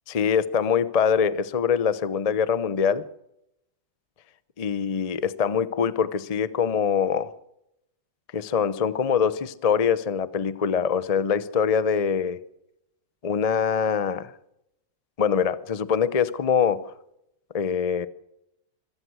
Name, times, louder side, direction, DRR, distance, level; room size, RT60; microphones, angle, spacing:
voice 1, 0.1-3.1 4.6-7.3 8.3-12.4 13.2-14.3 15.2-16.9 17.5-18.1, left 7 dB, 65° left, 0.3 m, -24 dB
25.5 x 16.0 x 6.3 m
omnidirectional pair, 2.1 m